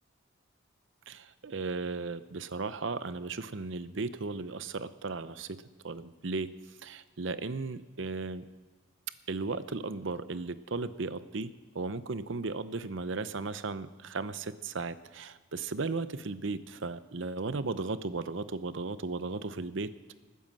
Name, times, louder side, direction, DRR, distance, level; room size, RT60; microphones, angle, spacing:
voice 1, 1.1-8.5 9.3-19.9, right 3 dB, 65° right, 13 dB, 0.7 m, -36 dB
20.0 x 9.4 x 7.6 m, 1.3 s
head